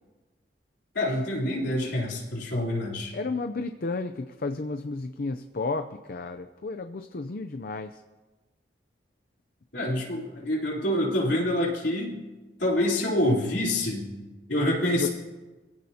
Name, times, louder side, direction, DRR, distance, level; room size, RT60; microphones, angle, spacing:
voice 1, 0.9-3.1 9.7-12.2 12.6-14.1 14.5-15.1, left 1 dB, 70° left, -3 dB, 3.9 m, -26 dB
voice 2, 3.1-8.0 14.9-15.1, left 3 dB, 55° left, 8 dB, 0.6 m, -32 dB
25.0 x 16.0 x 2.9 m, 1.2 s
head